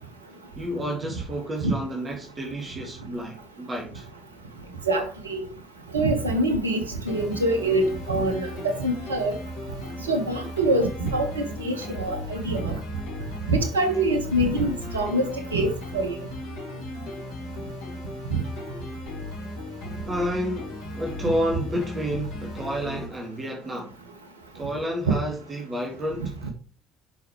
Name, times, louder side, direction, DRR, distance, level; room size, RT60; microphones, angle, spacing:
voice 1, 0.6-4.1 20.0-24.0 24.5-26.5, equal, 25° right, 2.4 m, -30 dB
voice 2, 4.9-5.4 5.9-9.4 10.1-12.7 13.5-16.1 18.3-18.4, right 1 dB, 80° right, 1.5 m, -25 dB
sound 1, 7.1-23.1, left 1 dB, 55° left, 4.4 m, -37 dB
10.5 x 5.8 x 3.2 m
figure-of-eight pair, 55°, 0 cm